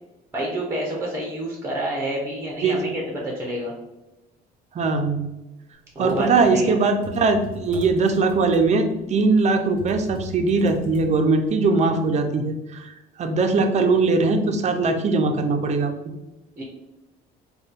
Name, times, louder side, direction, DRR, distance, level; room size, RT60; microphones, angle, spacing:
voice 1, 0.3-3.7 5.9-6.8 16.6-16.7, right 1 dB, 15° right, -2 dB, 0.8 m, -28 dB
voice 2, 2.6-2.9 4.7-5.3 6.0-12.9 13.2-15.9, right 3 dB, 40° right, 6 dB, 0.5 m, -21 dB
Computer keyboard, 5.9-11.5, equal, 50° left, 1.5 m, -40 dB
3.7 x 2.3 x 3.6 m, 0.98 s
cardioid pair, 110°, 17 cm